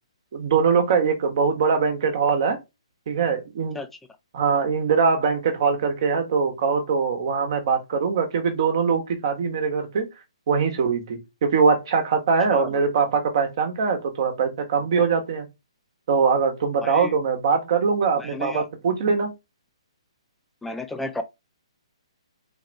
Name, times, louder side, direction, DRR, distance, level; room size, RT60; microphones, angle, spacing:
voice 1, 0.3-2.6 3.1-3.8 4.3-10.1 10.5-15.5 16.1-19.3, right 5 dB, 50° right, 1.2 m, -22 dB
voice 2, 16.8-17.1 18.2-18.6 20.6-21.2, left 2 dB, 5° left, 0.5 m, -32 dB
4.1 x 2.5 x 3.2 m
hypercardioid pair, 140°, 3 cm